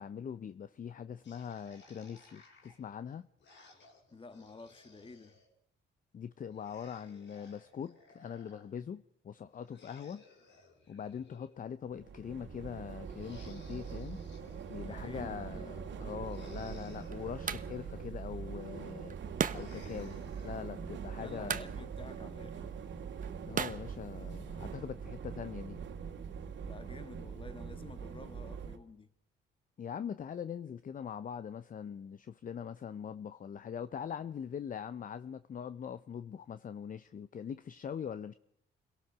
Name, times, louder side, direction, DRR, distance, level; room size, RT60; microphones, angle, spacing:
voice 1, 0.0-3.3 6.1-10.2 10.9-14.2 14.7-19.2 19.5-21.7 23.5-25.8 29.8-38.3, left 8 dB, 45° left, 0.7 m, -42 dB
sound 1, 1.2-5.5 6.5-8.7 9.5-11.9 13.0-15.3 16.2-18.4 19.5-20.6, left 3 dB, 65° left, 5.5 m, -59 dB
voice 2, 4.1-5.4 14.8-15.8 20.7-22.7 26.6-29.1, left 3 dB, 25° left, 1.7 m, -51 dB
sound 2, 11.9-28.8, right 6 dB, 70° right, 2.3 m, -43 dB
sound 3, 16.2-24.8, right 7 dB, 45° right, 1.0 m, -41 dB
26.5 x 17.5 x 6.2 m
cardioid pair, 90°, 20 cm